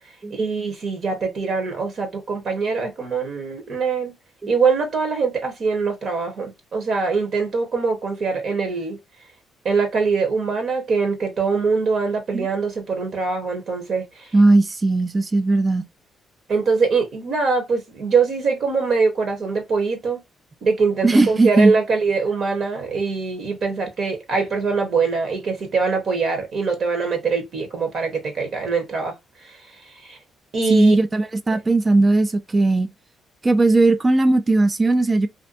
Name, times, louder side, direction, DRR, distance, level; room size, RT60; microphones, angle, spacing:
voice 1, 0.3-4.1 4.5-9.0 9.6-14.3 16.5-20.2 20.6-29.1 29.4-29.6 30.0-30.2 30.5-31.0 31.5-31.6, right 4 dB, 55° right, 0.9 m, -23 dB
voice 2, 14.3-15.8 21.0-21.7 30.7-32.9 33.4-35.3, right 2 dB, 20° right, 0.3 m, -17 dB
2.5 x 2.1 x 2.5 m
cardioid pair, 125°, 0 cm